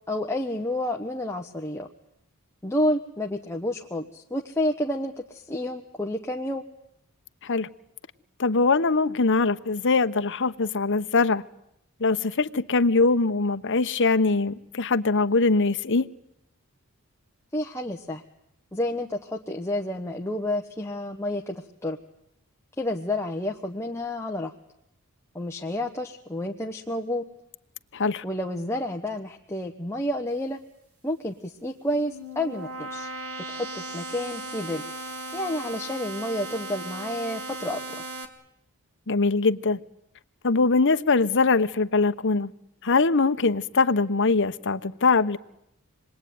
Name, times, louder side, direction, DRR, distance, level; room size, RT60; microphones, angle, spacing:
voice 1, 0.1-1.9 2.6-6.6 17.5-18.2 18.7-22.0 22.8-24.5 25.3-27.2 28.2-30.6 31.0-33.1 33.5-34.8 35.3-37.8, left 1 dB, 10° left, 1.2 m, -30 dB
voice 2, 8.4-11.4 12.0-16.1 27.9-28.2 39.1-39.8 40.4-42.5 42.8-45.4, left 3 dB, 55° left, 1.0 m, -22 dB
sound 1, 31.8-38.3, right 2 dB, 75° right, 3.6 m, -37 dB
26.5 x 21.5 x 9.5 m
head